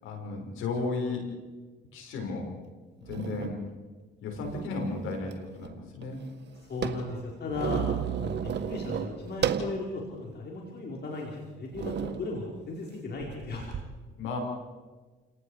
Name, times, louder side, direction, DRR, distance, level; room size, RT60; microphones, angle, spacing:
voice 1, 0.0-1.3 1.9-2.5 3.0-3.6 4.2-6.2 14.2-14.4, left 3 dB, 80° left, 2 dB, 6.0 m, -34 dB
sound 1, 2.4-2.5 3.0-3.6 4.3-5.4 5.6-5.7 6.0-9.8 10.3-10.4 11.1-11.3 11.7-12.2 13.2-13.8, right 8 dB, 60° right, 1.8 m, -33 dB
voice 2, 6.7-7.8 8.2-13.7, left 3 dB, 55° left, -2 dB, 5.0 m, -36 dB
29.5 x 18.5 x 5.1 m, 1.3 s
supercardioid pair, 70°, 21 cm